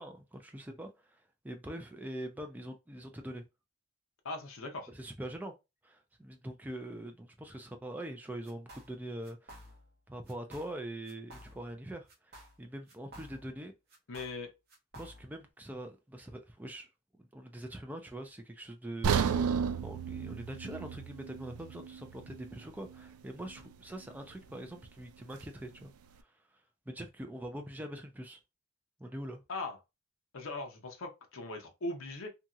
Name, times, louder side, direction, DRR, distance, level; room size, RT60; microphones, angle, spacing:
voice 1, 0.0-3.4 4.9-5.5 5.8-9.6 10.1-13.7 15.0-16.9 17.2-25.9 26.2-26.3 26.9-28.4 29.0-29.4, right 1 dB, 10° right, 0.3 m, -43 dB
voice 2, 4.2-4.9 14.1-14.5 29.5-29.8 30.3-32.3, left 2 dB, 65° left, 0.7 m, -39 dB
sound 1, 8.4-9.0 9.2-10.0 10.3-10.8 11.0-11.8 12.1-13.6 13.9-15.4, equal, 45° right, 1.0 m, -53 dB
sound 2, 19.0-23.1 23.4-23.6 24.2-24.3, right 7 dB, 90° right, 0.3 m, -33 dB
2.8 x 2.7 x 2.3 m
head